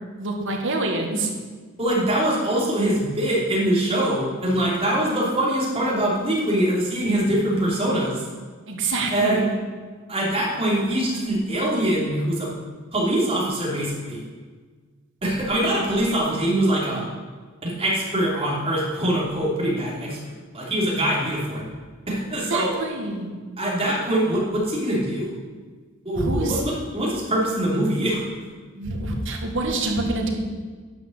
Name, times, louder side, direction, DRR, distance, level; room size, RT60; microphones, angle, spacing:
voice 1, 0.2-1.3 8.7-9.4 22.5-23.3 26.2-26.6 28.7-30.3, right 2 dB, 55° right, 2 dB, 1.7 m, -26 dB
voice 2, 1.8-8.2 9.1-9.5 10.1-12.5 12.9-14.2 15.2-17.1 17.6-21.7 22.1-22.7 23.6-25.3 26.0-28.5, right 1 dB, 25° right, -4 dB, 3.0 m, -23 dB
10.5 x 6.1 x 7.9 m, 1.5 s
head